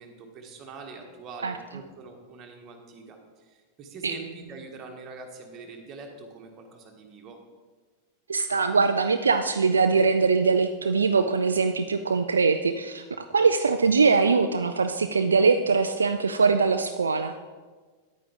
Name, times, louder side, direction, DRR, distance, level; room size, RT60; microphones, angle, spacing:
voice 1, 0.0-7.4, right 4 dB, 30° right, 2 dB, 1.5 m, -43 dB
voice 2, 8.3-17.3, right 4 dB, 75° right, 8 dB, 0.3 m, -22 dB
9.5 x 9.1 x 3.6 m, 1.4 s
figure-of-eight pair, 90°, 0 cm